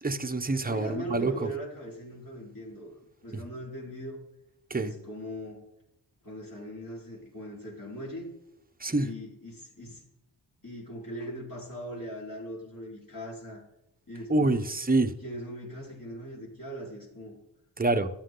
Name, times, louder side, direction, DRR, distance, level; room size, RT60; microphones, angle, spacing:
voice 1, 0.0-1.5 4.7-4.9 8.8-9.1 14.3-15.1 17.8-18.1, right 2 dB, 20° right, 7 dB, 1.0 m, -26 dB
voice 2, 0.6-4.2 4.8-5.6 6.2-8.3 9.0-10.0 10.6-13.6 14.1-14.7 15.2-17.4, equal, 45° left, -5 dB, 4.6 m, -40 dB
12.5 x 9.2 x 3.9 m, 0.85 s
cardioid pair, 65°, 46 cm